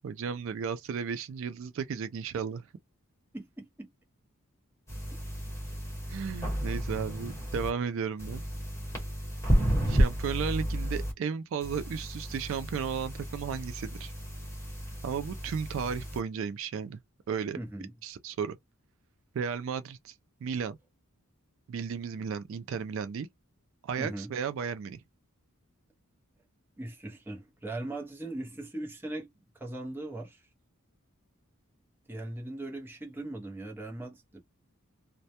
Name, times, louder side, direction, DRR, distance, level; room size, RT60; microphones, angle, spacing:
voice 1, 0.0-2.7 6.1-8.4 9.9-14.1 15.0-17.0 17.3-17.6 18.0-18.6 19.3-20.1 20.4-20.8 21.7-23.3 23.8-25.0, right 6 dB, 60° right, 0.3 m, -34 dB
voice 2, 3.3-3.9 9.6-9.9 17.6-17.9 24.0-24.3 26.8-29.3 29.5-30.4 32.1-34.4, right 1 dB, 10° right, 0.6 m, -39 dB
sound 1, 4.9-7.7 8.2-11.1 11.6-16.2, equal, 15° left, 1.0 m, -32 dB
2.1 x 2.1 x 2.7 m
head